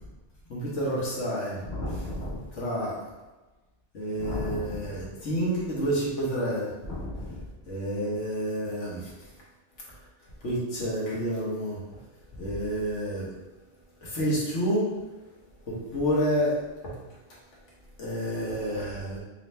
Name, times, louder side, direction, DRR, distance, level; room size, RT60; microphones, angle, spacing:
voice 1, 0.5-1.6 2.5-3.0 3.9-6.7 7.7-9.1 10.4-11.8 12.4-13.3 14.0-14.9 15.7-16.6 16.8-16.9 18.0-19.2, equal, 80° left, -6 dB, 1.5 m, -29 dB
voice 2, 1.6-2.5 4.2-5.1 6.8-7.4, left 1 dB, 60° left, -11 dB, 1.4 m, -34 dB
3.9 x 2.8 x 3.3 m, 1.2 s
omnidirectional pair, 1.2 m